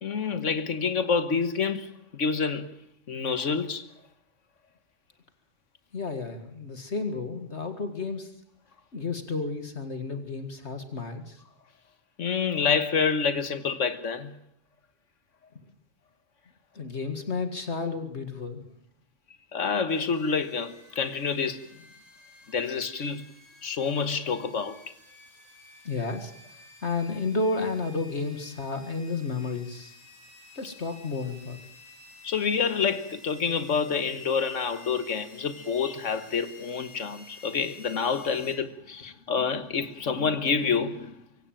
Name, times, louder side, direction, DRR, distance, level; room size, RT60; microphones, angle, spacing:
voice 1, 0.0-2.7 3.1-3.9 12.2-14.3 19.5-21.6 22.5-23.3 23.6-24.8 32.2-41.1, left 5 dB, 90° left, 1.7 m, -28 dB
voice 2, 5.9-8.3 8.9-11.4 15.6-15.7 16.7-18.6 25.8-26.3 26.8-30.0 30.5-31.6, left 3 dB, 65° left, 2.3 m, -32 dB
sound 1, 19.9-38.6, left 1 dB, 30° left, 3.7 m, -52 dB
24.5 x 17.0 x 9.0 m
omnidirectional pair, 1.2 m